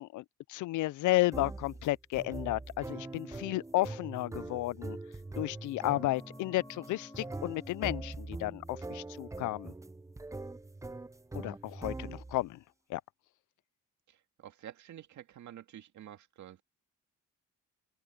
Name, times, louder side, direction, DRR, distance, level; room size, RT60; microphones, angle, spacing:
voice 1, 0.0-5.0 5.4-9.7 11.3-12.6 12.9-13.0, left 18 dB, 80° left, 0.5 m, -33 dB
sound 1, 1.3-12.5, right 2 dB, 10° right, 0.7 m, -43 dB
sound 2, 5.0-10.5 10.7-10.8, left 2 dB, 15° left, 2.8 m, -56 dB
voice 2, 11.4-11.8 14.1-16.6, right 11 dB, 70° right, 2.4 m, -50 dB
cardioid pair, 90°, 30 cm